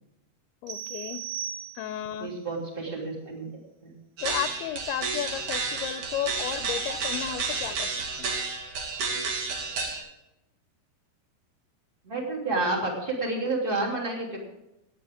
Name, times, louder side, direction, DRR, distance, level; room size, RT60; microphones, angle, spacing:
voice 1, 0.6-1.2 1.8-2.3 4.2-8.3, left 11 dB, 80° left, 10 dB, 2.4 m, -34 dB
sound 1, 0.7-2.2, right 9 dB, 70° right, 3.7 m, -37 dB
voice 2, 2.2-3.9 12.0-14.4, right 2 dB, 15° right, -1 dB, 2.6 m, -30 dB
sound 2, 4.2-10.0, right 4 dB, 55° right, 3.3 m, -31 dB
18.0 x 10.0 x 3.6 m, 0.90 s
omnidirectional pair, 4.6 m